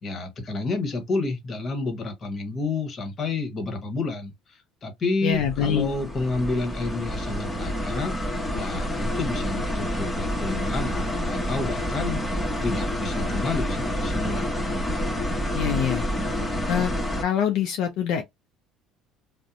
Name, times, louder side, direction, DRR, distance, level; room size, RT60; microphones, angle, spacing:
voice 1, 0.0-8.1 8.5-14.6, left 3 dB, 40° left, 1.0 m, -30 dB
voice 2, 5.2-5.9 15.5-16.0 16.7-16.9 17.2-18.2, left 9 dB, 75° left, 0.4 m, -24 dB
sound 1, 5.3-17.2, equal, 15° left, 0.9 m, -28 dB
2.6 x 2.0 x 2.4 m
supercardioid pair, 95°, 0 cm